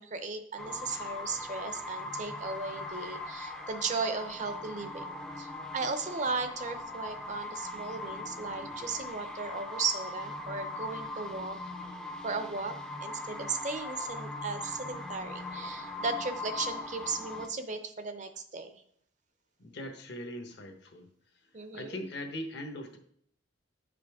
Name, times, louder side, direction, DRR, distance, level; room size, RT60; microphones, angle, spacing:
voice 1, 0.0-11.6 12.2-12.8 13.0-18.8 21.5-22.0, right 4 dB, 40° right, 8 dB, 0.6 m, -36 dB
sound 1, 0.6-17.5, left 2 dB, 5° left, 0.5 m, -40 dB
voice 2, 19.6-21.1 21.7-23.0, left 1 dB, 60° left, 5 dB, 1.0 m, -40 dB
9.0 x 5.1 x 3.5 m, 0.66 s
head